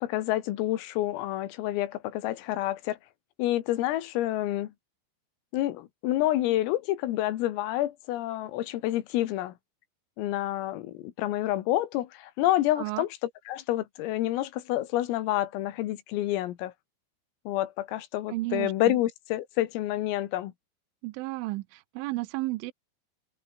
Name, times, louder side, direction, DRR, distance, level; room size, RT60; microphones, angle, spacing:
voice 1, 0.0-3.0 3.4-4.7 5.5-9.5 10.2-16.7 17.5-20.5, left 14 dB, 85° left, 4.2 m, -28 dB
voice 2, 18.3-19.0 21.0-22.7, right 20 dB, 80° right, 3.1 m, -33 dB
omnidirectional pair, 6.0 m